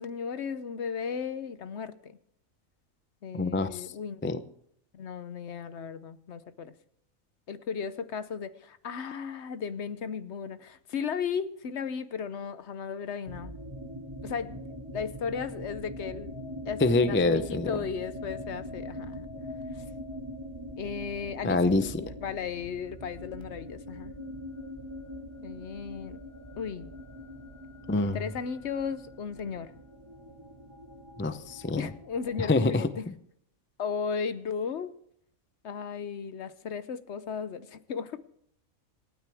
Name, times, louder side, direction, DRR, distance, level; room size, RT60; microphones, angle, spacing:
voice 1, 0.0-2.2 3.2-4.3 4.9-6.7 7.5-13.5 14.2-14.6 14.9-16.4 16.7-19.3 19.7-19.8 20.8-21.7 22.2-24.1 25.4-26.2 26.6-26.9 28.1-29.7 31.8-33.1 33.8-34.9 35.6-38.2, left 6 dB, 60° left, 13 dB, 1.0 m, -35 dB
voice 2, 3.3-3.9 4.2-4.4 16.8-17.7 21.4-22.0 27.9-28.2 31.2-31.9 32.4-32.9, left 2 dB, 20° left, 11 dB, 0.3 m, -26 dB
sound 1, 13.3-33.1, left 1 dB, 20° right, 1.8 m, -42 dB
27.0 x 9.4 x 3.5 m, 0.70 s
omnidirectional pair, 1.4 m